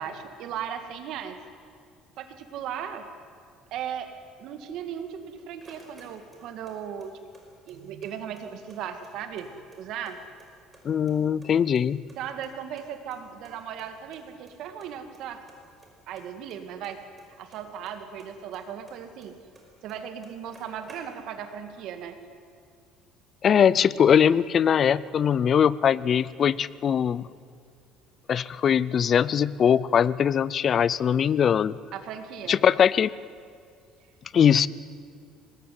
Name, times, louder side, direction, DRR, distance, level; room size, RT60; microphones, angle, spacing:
voice 1, 0.0-1.4 2.2-3.1 3.7-4.1 4.4-7.1 7.7-10.2 12.2-15.4 16.1-17.0 17.4-19.3 19.8-22.2 31.9-32.6, right 8 dB, 60° right, 8 dB, 2.3 m, -37 dB
sound 1, 5.2-6.7 7.0-8.1 8.4-8.5 8.7-10.1 10.4-11.1 11.4-12.8 13.1-13.2 13.4-13.5 13.8-13.9 14.1-14.5 14.8-15.2 15.5-17.9 18.2-19.6 19.9-20.0 20.2-21.4, right 3 dB, 15° right, 5.4 m, -54 dB
voice 2, 10.8-12.0 23.4-27.3 28.3-31.8 32.5-33.1 34.3-34.7, left 8 dB, 35° left, 19 dB, 0.6 m, -21 dB
24.0 x 20.0 x 9.5 m, 2.3 s
cardioid pair, 155°, 0 cm